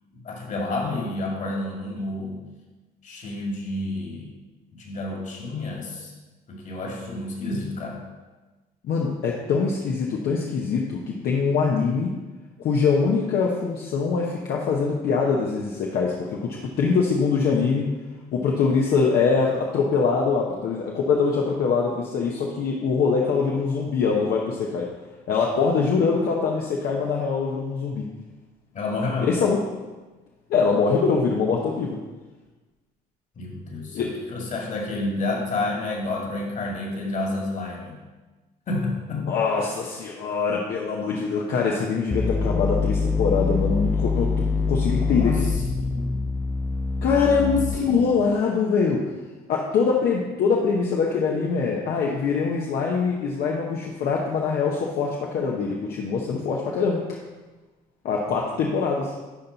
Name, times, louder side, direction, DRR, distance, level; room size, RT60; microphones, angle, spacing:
voice 1, 0.1-2.4 3.0-4.3 4.7-6.1 6.5-8.0 28.7-29.3 33.4-38.0 38.7-39.4 45.0-46.3 47.4-47.6 47.8-48.2, left 2 dB, 50° left, -1 dB, 2.2 m, -30 dB
voice 2, 8.8-12.1 12.6-17.9 18.3-24.9 25.3-28.0 29.2-29.6 30.5-32.0 33.9-34.1 39.3-45.4 47.0-49.1 49.5-57.2 58.0-59.1, left 5 dB, 65° left, -1 dB, 1.0 m, -23 dB
sound 1, 42.1-48.1, left 4 dB, 10° left, 0.4 m, -25 dB
11.0 x 4.4 x 4.0 m, 1.2 s
cardioid pair, 110°, 17 cm